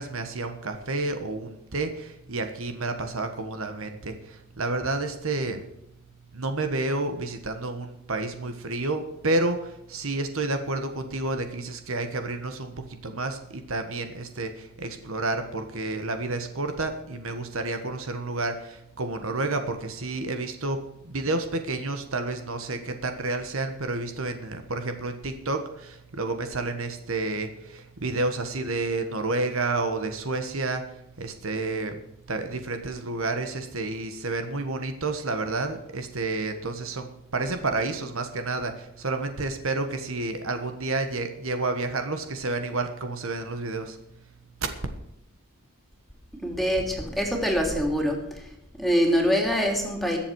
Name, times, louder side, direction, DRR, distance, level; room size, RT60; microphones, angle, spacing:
voice 1, 0.0-5.6 6.3-30.8 31.2-32.0 32.3-44.0 44.6-44.7, right 2 dB, 65° right, 7 dB, 1.4 m, -30 dB
voice 2, 46.4-48.2 48.8-50.2, equal, ahead, 1 dB, 2.9 m, -24 dB
22.0 x 7.3 x 4.7 m, 0.85 s
head